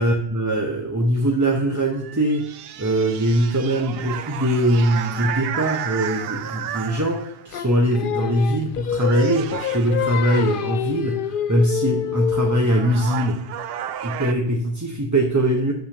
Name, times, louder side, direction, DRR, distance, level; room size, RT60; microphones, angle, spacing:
voice 1, 0.0-2.5 2.8-13.4 14.0-15.7, right 1 dB, 20° right, 1 dB, 0.8 m, -21 dB
sound 1, 1.9-7.5 8.4-8.7 9.0-10.8 12.2-12.3 12.6-14.3, right 10 dB, 75° right, 0.8 m, -33 dB
Singing, 7.5-12.7, left 9 dB, 65° left, 0.7 m, -26 dB
6.8 x 6.3 x 6.6 m, 0.78 s
omnidirectional pair, 1.0 m